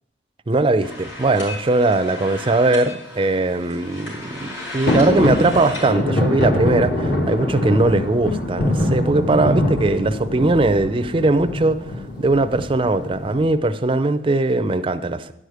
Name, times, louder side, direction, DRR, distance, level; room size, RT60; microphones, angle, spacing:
voice 1, 0.5-11.8 12.2-15.3, right 2 dB, 30° right, 11 dB, 0.5 m, -20 dB
sound 1, 0.8-5.9, left 1 dB, 90° left, 3.7 m, -35 dB
sound 2, 4.9-13.4, left 1 dB, 60° left, 2.0 m, -23 dB
11.0 x 4.9 x 8.0 m, 0.84 s
head